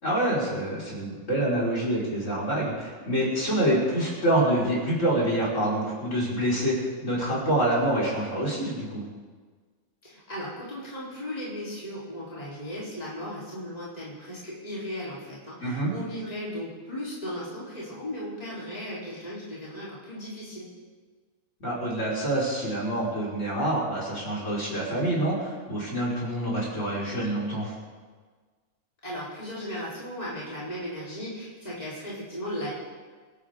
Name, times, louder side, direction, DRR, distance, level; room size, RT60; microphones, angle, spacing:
voice 1, 0.0-9.1 15.6-15.9 21.6-27.7, right 1 dB, 55° left, -6 dB, 5.7 m, -26 dB
voice 2, 10.0-20.7 29.0-32.7, equal, 25° left, -8 dB, 4.3 m, -36 dB
27.5 x 12.5 x 3.9 m, 1.5 s
omnidirectional pair, 1.5 m